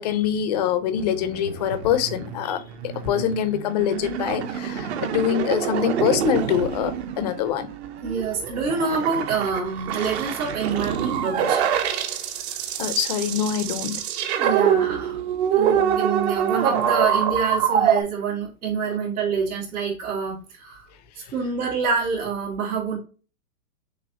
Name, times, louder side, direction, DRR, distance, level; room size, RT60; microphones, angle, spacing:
voice 1, 0.0-7.7 12.8-14.0, left 9 dB, 30° left, 0.4 m, -24 dB
sound 1, 1.0-18.0, right 8 dB, 50° right, 0.7 m, -25 dB
voice 2, 8.0-11.7 12.5-12.6 14.4-15.2 15.5-20.9 21.1-23.0, right 5 dB, 80° right, 2.4 m, -27 dB
6.2 x 2.5 x 2.7 m
hypercardioid pair, 145°, 43 cm